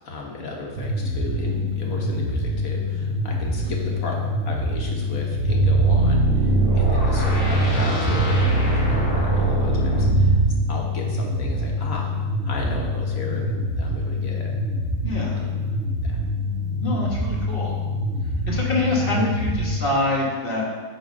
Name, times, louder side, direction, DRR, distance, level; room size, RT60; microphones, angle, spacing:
voice 1, 0.0-4.2 4.5-10.4 10.7-12.1 12.5-14.5 15.3-15.5 16.0-16.2, left 3 dB, 85° left, -1 dB, 1.7 m, -34 dB
sound 1, 0.8-19.8, left 1 dB, 65° right, 1.1 m, -26 dB
sound 2, 5.3-10.6, right 3 dB, 60° left, 2.7 m, -20 dB
voice 2, 15.0-15.4 16.8-17.8 18.5-20.6, left 2 dB, 45° left, -3 dB, 1.5 m, -25 dB
8.0 x 3.8 x 5.3 m, 1.5 s
omnidirectional pair, 1.4 m